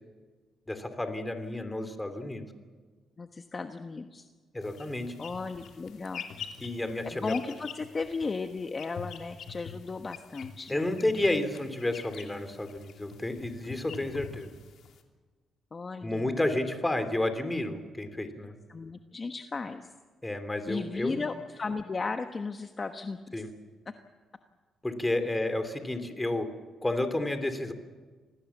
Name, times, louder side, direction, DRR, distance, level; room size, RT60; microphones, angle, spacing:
voice 1, 0.7-2.4 4.5-5.1 6.6-7.3 10.7-14.5 16.0-18.6 20.2-21.2 23.3-23.5 24.8-26.5 26.8-27.7, left 1 dB, 15° left, 8 dB, 3.1 m, -31 dB
voice 2, 3.2-4.3 5.2-6.2 7.0-10.9 15.7-16.4 18.7-19.9 20.7-23.4 23.9-24.0, left 4 dB, 30° left, 6 dB, 1.2 m, -35 dB
sound 1, 4.6-15.0, left 6 dB, 70° left, 3.0 m, -46 dB
26.5 x 19.0 x 7.3 m, 1.4 s
cardioid pair, 90°, 0 cm